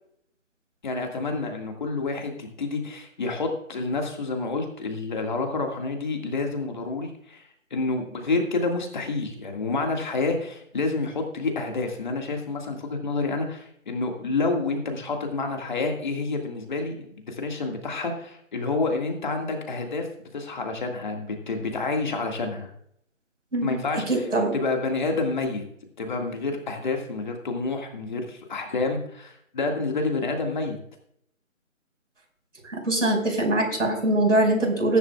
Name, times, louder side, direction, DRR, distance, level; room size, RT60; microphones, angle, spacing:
voice 1, 0.8-7.4 7.7-20.1 20.3-22.7 23.6-25.6 26.0-30.8, left 3 dB, 35° left, 3 dB, 2.0 m, -28 dB
voice 2, 24.1-24.5 32.7-35.0, right 1 dB, 70° right, 2 dB, 5.6 m, -22 dB
20.0 x 10.5 x 2.4 m, 0.69 s
figure-of-eight pair, 155°, 40 cm